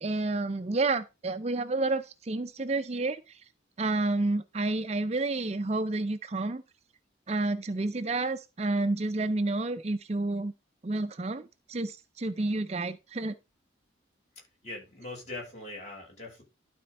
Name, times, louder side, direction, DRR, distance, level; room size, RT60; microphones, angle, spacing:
voice 1, 0.0-3.4 3.8-6.6 7.3-10.5 10.8-13.4, right 2 dB, 30° right, 0.5 m, -30 dB
voice 2, 14.4-16.4, left 2 dB, 35° left, 5.7 m, -42 dB
12.0 x 4.3 x 5.3 m
head